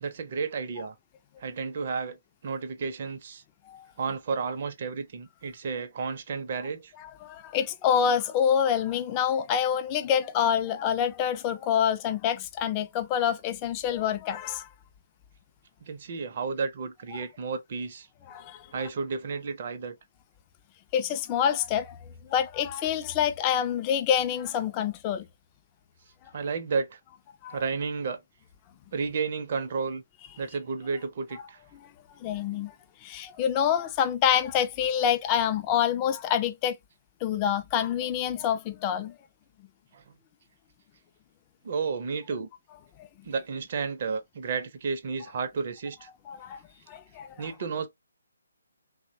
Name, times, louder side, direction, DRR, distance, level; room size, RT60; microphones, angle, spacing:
voice 1, 0.0-1.0 1.4-2.2 2.4-3.4 4.0-6.9 15.8-18.1 18.7-20.0 26.3-27.0 27.5-28.2 28.9-30.0 30.4-31.6 39.9-40.0 41.6-42.5 43.2-46.1 47.4-47.9, right 5 dB, 45° right, 0.5 m, -32 dB
voice 2, 7.0-14.7 18.3-18.6 20.9-22.0 22.3-25.3 27.4-27.6 32.2-32.7 33.0-36.8 37.2-39.1 43.0-43.1 46.3-46.6 46.9-47.4, left 9 dB, 25° left, 0.3 m, -27 dB
2.8 x 2.1 x 2.6 m
figure-of-eight pair, 145°, 0 cm